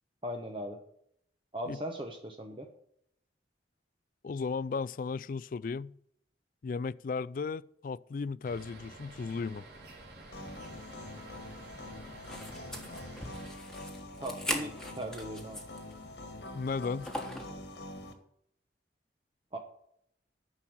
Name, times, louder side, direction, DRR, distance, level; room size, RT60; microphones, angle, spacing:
voice 1, 0.2-0.8 1.5-2.7 14.2-15.6 19.5-19.6, equal, 30° right, 0.9 m, -38 dB
voice 2, 4.2-5.9 6.6-9.6 16.5-17.2, left 4 dB, 50° left, 0.3 m, -35 dB
sound 1, 8.4-13.5, right 2 dB, 80° right, 3.2 m, -50 dB
sound 2, 10.3-18.1, left 1 dB, 75° left, 1.7 m, -45 dB
sound 3, 12.2-15.9 16.3-16.4 17.0-17.6, equal, 5° left, 1.4 m, -39 dB
9.8 x 6.2 x 8.5 m
head